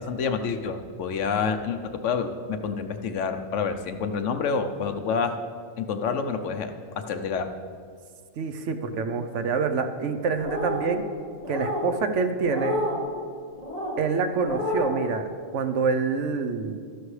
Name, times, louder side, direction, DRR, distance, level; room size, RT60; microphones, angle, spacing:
voice 1, 0.0-5.4 5.8-7.5, left 5 dB, 75° left, 8 dB, 1.0 m, -28 dB
voice 2, 8.4-11.0 11.5-12.8 14.0-15.3 15.5-16.8, right 4 dB, 75° right, 7 dB, 1.0 m, -26 dB
sound 1, 10.4-10.9 11.4-11.9 12.4-13.0 13.6-14.0 14.4-15.0, left 1 dB, 30° left, 2.0 m, -29 dB
13.0 x 11.0 x 3.2 m, 2.1 s
omnidirectional pair, 1.3 m